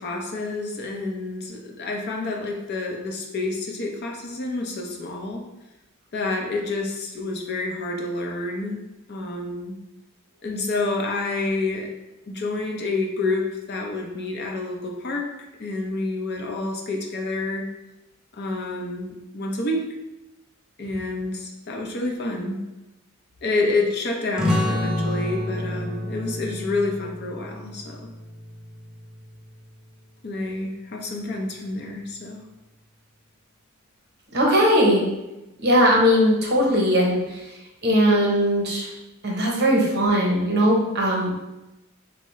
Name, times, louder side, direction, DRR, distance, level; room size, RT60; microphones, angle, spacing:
voice 1, 0.0-5.5 6.1-8.8 9.1-9.8 10.4-11.9 12.3-15.3 15.6-17.7 18.3-19.9 20.8-22.6 23.4-28.1 30.2-32.5, left 2 dB, 50° left, 1 dB, 0.6 m, -28 dB
sound 1, 24.4-29.6, left 1 dB, 5° right, 0.4 m, -29 dB
voice 2, 34.3-35.0 35.6-37.4 37.8-38.9 39.2-41.3, equal, 50° right, -2 dB, 0.8 m, -19 dB
3.6 x 2.0 x 4.1 m, 0.97 s
head